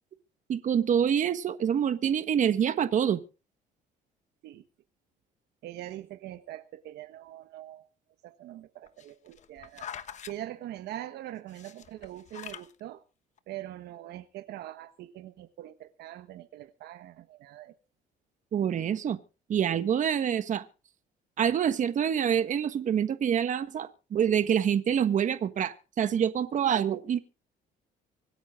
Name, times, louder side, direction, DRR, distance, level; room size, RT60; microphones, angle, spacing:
voice 1, 0.5-3.2 18.5-19.2 19.5-20.6 21.4-27.2, right 8 dB, 50° right, 11 dB, 1.4 m, -26 dB
voice 2, 5.6-7.9 8.2-9.9 10.3-13.0 13.5-17.7, right 13 dB, 75° right, 10 dB, 1.3 m, -43 dB
sound 1, 8.9-10.3 11.5-12.7 13.4-13.5, left 8 dB, 45° left, 1.1 m, -43 dB
25.0 x 9.5 x 3.7 m, 0.34 s
cardioid pair, 110°, 17 cm